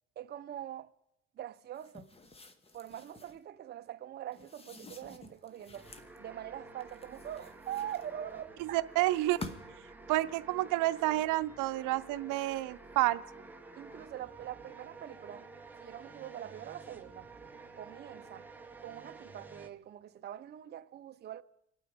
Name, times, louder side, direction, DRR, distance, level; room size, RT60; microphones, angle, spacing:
voice 1, 0.2-0.9 1.4-2.1 2.7-5.9 6.2-8.8 13.7-15.5 15.8-17.3 17.7-18.5 18.8-21.4, right 11 dB, 35° right, 0.5 m, -43 dB
sound 1, 1.7-3.4 4.3-6.2 6.8-8.4 9.1-9.9, left 3 dB, 20° left, 1.0 m, -49 dB
sound 2, 5.7-19.7, right 3 dB, 5° right, 0.9 m, -51 dB
voice 2, 8.7-9.4 10.1-13.2, right 17 dB, 85° right, 0.6 m, -29 dB
26.5 x 9.1 x 5.0 m
cardioid pair, 140°, 30 cm